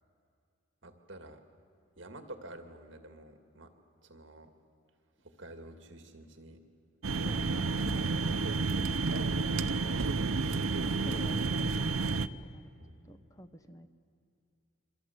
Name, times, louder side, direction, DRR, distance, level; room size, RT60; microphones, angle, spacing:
voice 1, 0.8-1.4 2.0-3.7 4.0-4.5 5.2-6.6 12.8-13.0, right 1 dB, 60° right, 6 dB, 2.2 m, -49 dB
sound 1, 7.0-12.3, right 4 dB, 85° right, 0.7 m, -30 dB
voice 2, 7.2-8.4 9.4-10.0 10.8-12.7 13.1-13.9, equal, 15° left, 9 dB, 1.1 m, -48 dB
28.5 x 23.5 x 8.1 m, 2.5 s
head